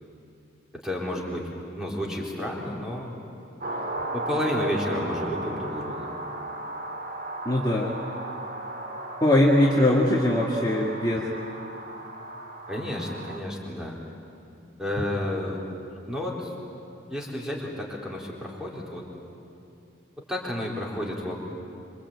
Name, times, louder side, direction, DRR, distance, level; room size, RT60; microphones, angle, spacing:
voice 1, 0.7-3.1 4.1-6.1 12.7-14.0 14.8-15.6 16.1-16.5 17.1-19.0 20.2-21.4, left 1 dB, 5° right, -3 dB, 4.0 m, -31 dB
sound 1, 3.6-13.4, right 1 dB, 45° right, 2.1 m, -35 dB
voice 2, 7.5-7.9 9.2-11.2, left 1 dB, 20° left, -4 dB, 2.1 m, -21 dB
26.5 x 25.0 x 8.7 m, 2.6 s
head